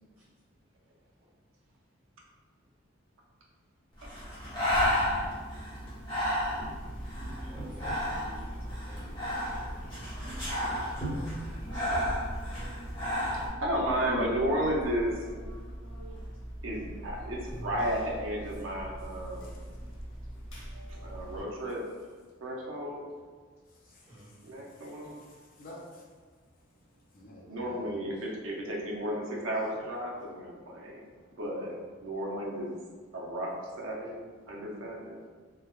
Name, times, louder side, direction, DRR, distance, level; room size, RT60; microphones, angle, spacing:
Breathing, 4.0-13.5, equal, 25° left, 0.9 m, -32 dB
sound 1, 6.6-21.4, right 1 dB, 70° left, 0.8 m, -42 dB
voice 1, 7.4-12.0 24.0-24.3, equal, 30° right, -13 dB, 1.2 m, -52 dB
voice 2, 13.3-15.3 16.6-19.6 20.7-21.8 22.4-23.0 24.4-25.2 27.4-31.0 31.4-32.7 33.1-35.2, equal, 80° right, -2 dB, 0.6 m, -33 dB
voice 3, 23.7-24.4 24.7-26.0 27.1-28.0 31.1-31.2 34.4-34.5, left 1 dB, 45° left, -3 dB, 0.5 m, -52 dB
3.3 x 2.2 x 2.3 m, 1.5 s
head